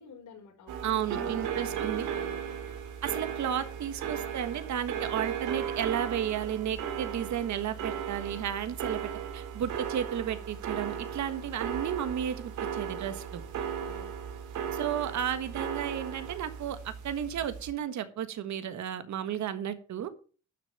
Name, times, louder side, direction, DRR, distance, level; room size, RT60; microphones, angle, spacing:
voice 1, 0.0-0.8 1.1-2.7 13.5-14.1, left 5 dB, 80° left, 1 dB, 5.6 m, -50 dB
sound 1, 0.7-17.7, right 8 dB, 90° right, 2.4 m, -36 dB
voice 2, 0.8-2.1 3.0-9.0 9.3-13.4 14.7-20.1, right 9 dB, 65° right, 11 dB, 1.6 m, -33 dB
12.0 x 6.6 x 6.7 m, 0.38 s
cardioid pair, 90°, 30 cm